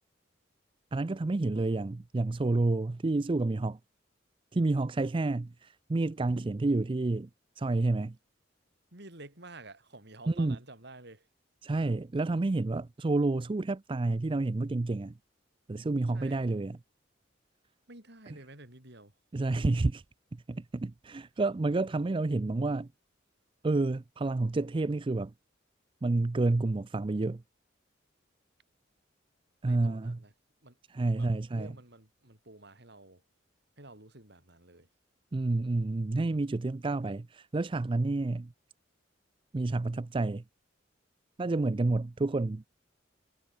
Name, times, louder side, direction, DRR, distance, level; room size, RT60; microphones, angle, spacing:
voice 1, 0.9-3.8 4.5-7.3 7.6-8.2 10.3-10.6 11.6-15.1 15.7-16.8 19.3-20.0 20.5-22.9 23.6-25.3 26.0-27.4 29.6-30.2 30.9-31.7 35.3-38.5 39.5-40.4 41.4-42.6, right 2 dB, 25° right, 0.4 m, -29 dB
voice 2, 8.9-11.3 16.1-16.5 17.9-19.1 29.6-30.3 30.6-30.8 31.2-33.2 33.8-34.9, right 2 dB, 60° right, 5.2 m, -51 dB
head